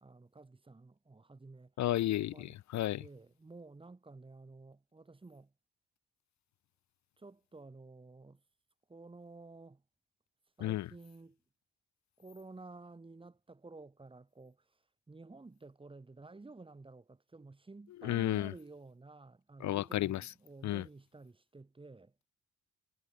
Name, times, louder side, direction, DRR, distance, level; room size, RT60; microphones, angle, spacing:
voice 1, 0.0-1.7 2.3-2.6 3.0-5.5 7.2-8.4 8.9-9.8 10.6-11.4 12.2-14.6 15.1-22.1, right 3 dB, 15° right, 2.1 m, -52 dB
voice 2, 1.8-3.0 10.6-10.9 18.0-18.5 19.6-20.3 20.6-20.8, left 14 dB, 65° left, 0.5 m, -32 dB
cardioid pair, 140°, 31 cm